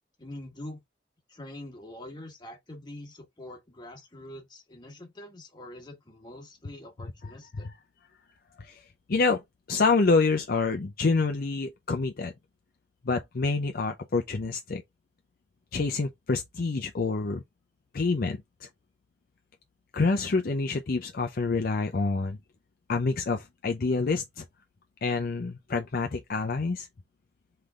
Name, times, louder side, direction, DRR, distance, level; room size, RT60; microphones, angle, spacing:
voice 1, 0.2-0.8 1.3-7.7, left 1 dB, 25° left, 1.5 m, -44 dB
voice 2, 9.1-9.4 9.7-12.3 13.0-14.8 15.7-17.4 17.9-18.7 19.9-22.4 22.9-24.4 25.0-26.9, left 3 dB, 55° left, 0.5 m, -27 dB
3.8 x 3.3 x 3.5 m
head